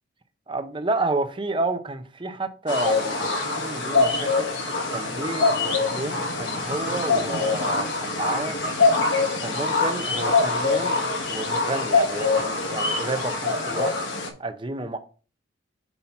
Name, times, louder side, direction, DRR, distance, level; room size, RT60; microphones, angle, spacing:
voice 1, 0.5-4.5 4.9-8.6 9.4-11.0 11.3-13.9 14.4-15.0, right 2 dB, 25° right, 0.6 m, -30 dB
sound 1, 2.7-14.3, left 3 dB, 70° left, 1.2 m, -24 dB
5.6 x 4.2 x 4.3 m
head